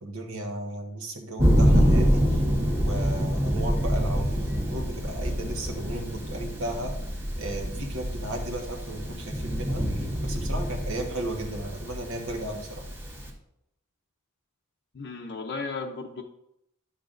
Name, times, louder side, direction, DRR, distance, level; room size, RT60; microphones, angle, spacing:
voice 1, 0.0-2.4 2.7-6.9 7.4-12.9, right 1 dB, 75° right, 2 dB, 1.4 m, -35 dB
Thunder, 1.4-13.3, equal, 15° right, 1.3 m, -26 dB
voice 2, 14.9-16.2, left 4 dB, 55° left, 1 dB, 0.6 m, -35 dB
10.0 x 6.9 x 2.6 m, 0.81 s
head